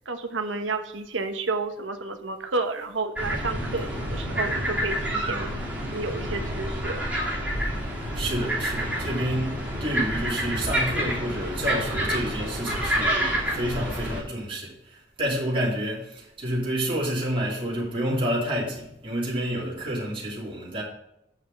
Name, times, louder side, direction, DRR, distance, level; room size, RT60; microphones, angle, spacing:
voice 1, 0.1-5.5 5.9-7.1, right 3 dB, 85° right, 1.1 m, -31 dB
sound 1, 3.2-14.2, equal, 5° right, 3.0 m, -28 dB
voice 2, 8.1-20.8, equal, 30° right, 3.0 m, -29 dB
7.9 x 5.6 x 5.2 m
head